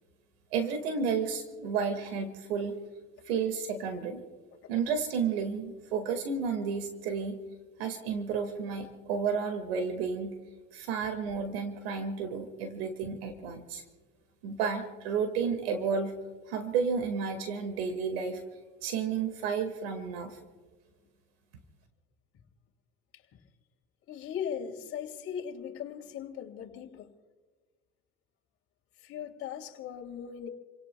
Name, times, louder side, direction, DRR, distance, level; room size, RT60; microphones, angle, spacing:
voice 1, 0.5-2.8 3.3-4.2 4.7-7.4 7.8-10.3 10.7-13.8 14.4-16.1 16.5-18.4 18.8-20.4, right 6 dB, 85° right, 7 dB, 2.1 m, -32 dB
voice 2, 24.1-27.1 29.0-30.5, left 8 dB, 50° left, 2 dB, 2.7 m, -38 dB
30.0 x 17.5 x 2.3 m, 1.4 s
supercardioid pair, 105°, 29 cm